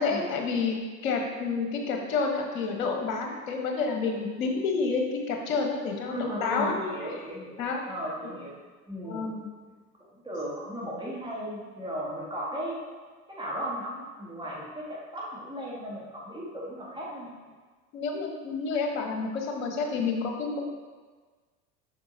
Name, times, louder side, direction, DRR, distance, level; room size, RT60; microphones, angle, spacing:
voice 1, 0.0-6.8 7.1-7.2 7.6-7.8 9.0-9.5 17.9-20.6, left 4 dB, 60° left, 2 dB, 1.3 m, -29 dB
voice 2, 6.1-8.5 8.9-9.3 10.2-12.8 13.3-17.3, equal, 10° right, -6 dB, 2.0 m, -36 dB
7.9 x 6.0 x 2.8 m, 1.4 s
figure-of-eight pair, 75°, 46 cm